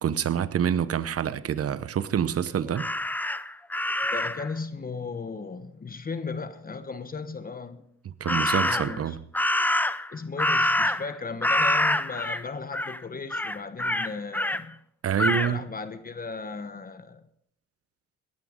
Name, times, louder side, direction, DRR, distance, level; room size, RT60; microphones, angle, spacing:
voice 1, 0.0-2.9 8.0-9.2 15.0-15.6, right 9 dB, 50° right, 0.9 m, -27 dB
Crow, 2.7-4.5 8.2-9.0 9.3-11.1 11.4-12.4 12.7-13.0 13.3-14.6 15.2-15.5, left 1 dB, 5° left, 0.5 m, -26 dB
voice 2, 4.1-7.9 8.3-9.2 10.1-14.8 15.4-17.2, left 4 dB, 30° left, 1.0 m, -36 dB
17.5 x 13.0 x 3.7 m
cardioid pair, 90°, 30 cm